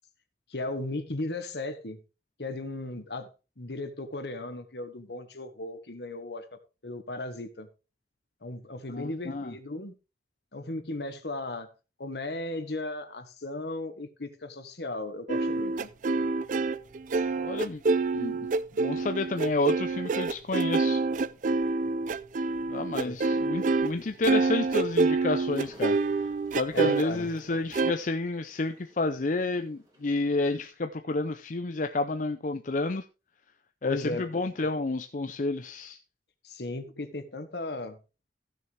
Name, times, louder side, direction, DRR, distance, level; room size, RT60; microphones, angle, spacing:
voice 1, 0.5-2.0 2.4-3.3 3.6-6.5 6.8-7.7 8.4-9.9 10.5-11.7 12.0-15.9 23.0-23.3 26.7-27.3 33.8-34.3 36.4-38.0, left 2 dB, 70° left, 1.4 m, -36 dB
voice 2, 9.0-9.5 17.4-17.8 18.1-18.5 18.7-21.0 22.7-33.0 33.8-36.0, left 3 dB, 45° left, 0.6 m, -30 dB
sound 1, 15.3-23.9 24.2-27.0 27.7-27.9, right 3 dB, 45° right, 0.4 m, -27 dB
sound 2, 25.5-30.6, equal, 20° right, 2.8 m, -54 dB
15.0 x 6.5 x 3.3 m
head